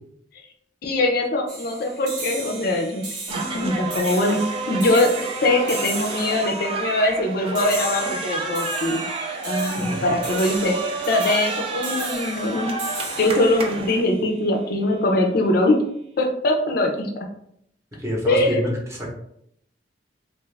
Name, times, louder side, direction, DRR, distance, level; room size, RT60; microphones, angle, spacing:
voice 1, 0.8-4.4 4.7-5.1 5.4-9.1 9.4-12.7 13.2-15.8 16.2-17.1 18.3-18.7, left 1 dB, 55° left, 3 dB, 0.4 m, -22 dB
sound 1, 1.5-14.9, right 3 dB, 65° right, 0.9 m, -36 dB
sound 2, 3.3-14.0, right 3 dB, 30° right, 0.4 m, -30 dB
voice 2, 9.8-10.1 18.0-19.1, equal, 15° right, -4 dB, 0.8 m, -27 dB
2.5 x 2.3 x 3.2 m, 0.72 s
head